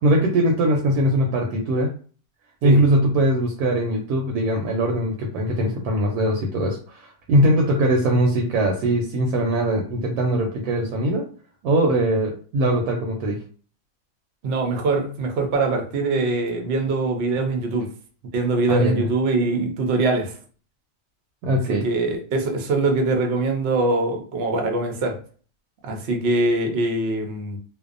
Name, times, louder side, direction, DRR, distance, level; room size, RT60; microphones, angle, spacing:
voice 1, 0.0-1.9 2.6-11.2 11.6-13.4 18.7-19.1 21.4-21.9, right 1 dB, 80° right, 1 dB, 1.1 m, -21 dB
voice 2, 14.4-17.9 18.3-20.4 21.5-25.2 25.8-27.6, right 2 dB, 60° right, 3 dB, 0.6 m, -23 dB
2.6 x 2.1 x 2.4 m, 0.41 s
omnidirectional pair, 1.6 m